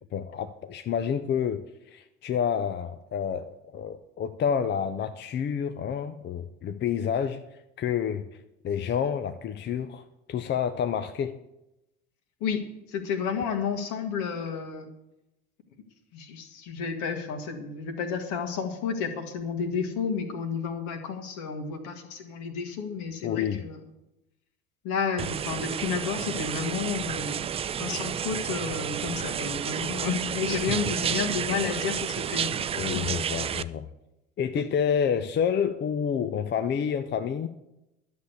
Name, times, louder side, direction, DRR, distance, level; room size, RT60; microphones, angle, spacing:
voice 1, 0.1-8.2 8.6-11.4 23.2-23.6 32.8-33.9 34.4-37.5, left 8 dB, 35° left, 9 dB, 0.7 m, -29 dB
voice 2, 12.4-14.9 16.1-23.8 24.8-27.4 27.8-32.7 33.1-33.2 34.6-34.7, left 6 dB, 60° left, 6 dB, 2.0 m, -31 dB
sound 1, 25.2-33.6, right 8 dB, 20° right, 0.3 m, -31 dB
11.5 x 7.1 x 8.1 m, 0.90 s
figure-of-eight pair, 65°, 33 cm